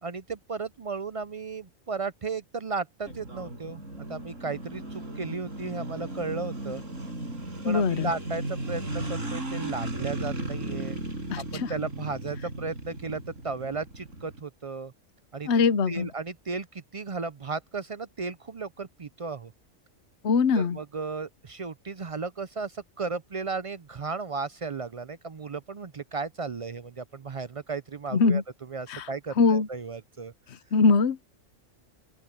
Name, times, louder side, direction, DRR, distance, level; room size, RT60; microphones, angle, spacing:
voice 1, 0.0-3.8 4.1-6.8 7.6-11.0 11.4-14.9 15.3-15.5 15.9-19.5 20.6-30.3, right 4 dB, 50° right, 0.4 m, -35 dB
sound 1, 3.1-14.4, right 1 dB, 75° right, 6.1 m, -36 dB
voice 2, 7.6-8.1 11.3-11.7 15.5-16.1 20.2-20.8 28.1-28.4 28.9-29.1 29.4-29.7 30.7-31.2, left 4 dB, 60° left, 1.2 m, -22 dB
open air
omnidirectional pair, 1.3 m